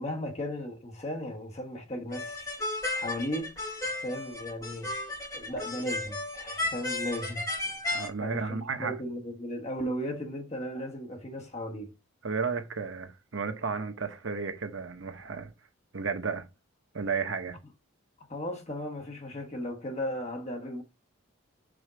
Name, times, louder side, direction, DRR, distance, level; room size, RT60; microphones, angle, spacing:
voice 1, 0.0-2.6 2.9-3.5 4.0-4.9 5.3-7.4 8.2-11.9 18.3-20.8, equal, 30° left, 1.1 m, -36 dB
sound 1, 2.1-8.1, left 2 dB, 15° left, 3.1 m, -34 dB
voice 2, 7.9-8.9 12.2-15.5 15.9-16.4 16.9-17.6, right 5 dB, 65° right, 0.9 m, -33 dB
5.0 x 4.4 x 5.0 m
head